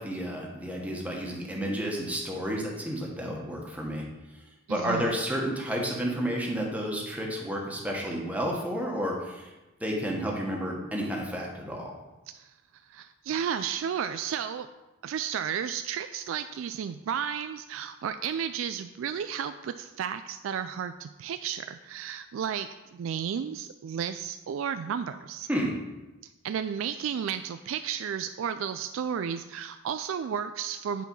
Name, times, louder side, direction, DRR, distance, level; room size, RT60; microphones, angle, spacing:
voice 1, 0.0-4.0 4.7-9.5 9.8-11.9 25.5-25.7, equal, 5° right, -2 dB, 1.4 m, -31 dB
voice 2, 4.7-5.1 12.3-12.5 12.9-14.7 15.0-25.5 26.4-31.0, right 8 dB, 75° right, 9 dB, 0.3 m, -33 dB
9.1 x 4.6 x 5.4 m, 1.1 s
head